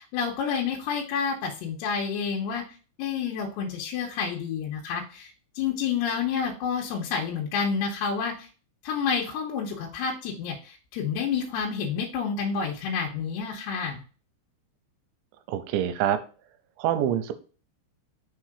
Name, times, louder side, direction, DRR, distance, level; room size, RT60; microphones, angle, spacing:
voice 1, 0.0-2.6 3.0-8.5 8.8-14.0, left 6 dB, 80° left, -2 dB, 3.0 m, -29 dB
voice 2, 15.5-16.2 16.8-17.3, right 10 dB, 85° right, 9 dB, 3.0 m, -25 dB
6.4 x 3.7 x 4.9 m, 0.37 s
omnidirectional pair, 5.2 m